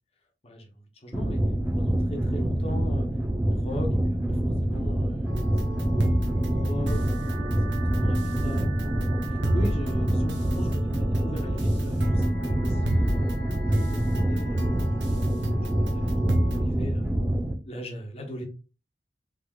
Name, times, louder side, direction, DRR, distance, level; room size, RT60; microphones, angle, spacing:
voice 1, 1.0-1.4 1.7-3.2 3.5-5.4 5.6-7.0 7.4-7.6 7.9-8.7 9.3-17.1 17.7-18.4, left 1 dB, 35° left, 0.8 m, -39 dB
sound 1, 1.1-17.5, right 1 dB, 10° right, 0.4 m, -26 dB
sound 2, 5.3-16.6, right 1 dB, 90° right, 0.7 m, -32 dB
3.5 x 2.9 x 2.2 m
head